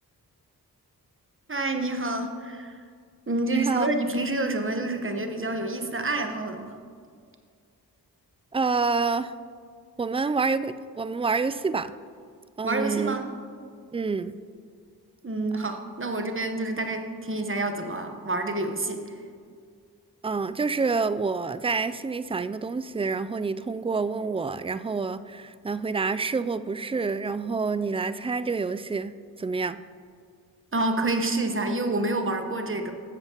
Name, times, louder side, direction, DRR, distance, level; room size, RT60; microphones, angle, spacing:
voice 1, 1.5-2.8 3.3-6.7 12.6-13.2 15.2-19.0 30.7-32.9, right 2 dB, 30° right, 5 dB, 1.1 m, -28 dB
voice 2, 3.5-3.9 8.5-9.3 10.0-11.9 12.6-13.2 13.9-14.3 20.2-29.8, right 4 dB, 15° right, 13 dB, 0.3 m, -28 dB
13.5 x 7.6 x 3.0 m, 2.1 s
cardioid pair, 40°, 39 cm